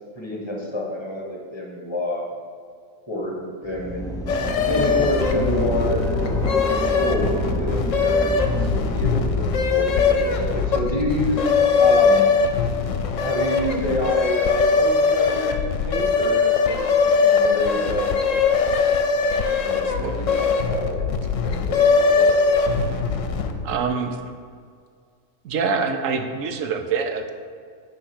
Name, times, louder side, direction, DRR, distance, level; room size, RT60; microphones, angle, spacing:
voice 1, 0.1-2.3 3.1-4.1 4.7-11.5 11.8-12.3 13.2-18.8 19.6-22.5, left 1 dB, 20° left, -1 dB, 1.3 m, -28 dB
sound 1, 3.7-13.6, equal, 5° left, 0.4 m, -29 dB
sound 2, 4.3-23.7, left 5 dB, 70° left, 1.0 m, -21 dB
voice 2, 23.6-24.2 25.4-27.3, right 5 dB, 75° right, 6 dB, 1.1 m, -25 dB
9.9 x 3.5 x 6.1 m, 2.1 s
omnidirectional pair, 1.4 m